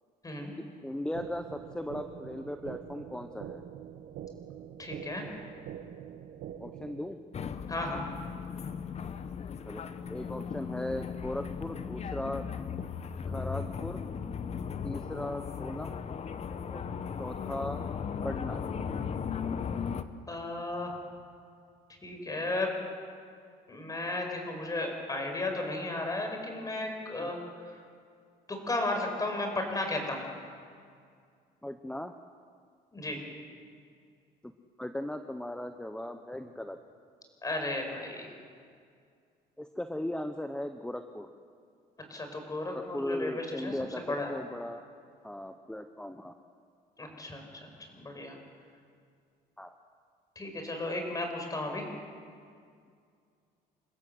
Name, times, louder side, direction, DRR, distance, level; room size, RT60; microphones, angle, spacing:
voice 1, 0.8-3.6 6.6-7.2 9.7-9.8 10.1-12.5 13.3-14.0 14.8-16.0 16.7-16.8 17.2-17.8 18.2-18.6 27.2-27.3 31.6-32.1 34.4-34.5 34.8-36.8 39.6-41.3 42.7-44.9 45.2-46.3 49.6-49.7, left 1 dB, 5° left, 7 dB, 0.9 m, -37 dB
sound 1, 1.1-7.1, right 9 dB, 75° right, 1.4 m, -44 dB
voice 2, 4.8-5.2 7.7-8.1 20.3-21.0 22.0-22.7 23.7-27.8 28.5-30.2 32.9-33.2 37.4-38.3 42.1-43.7 44.1-44.3 47.0-48.4 50.3-51.8, left 2 dB, 20° left, 3 dB, 5.1 m, -34 dB
sound 2, 7.3-20.0, left 6 dB, 40° left, 1.0 m, -37 dB
27.5 x 15.5 x 7.9 m, 2.2 s
cardioid pair, 110°, 17 cm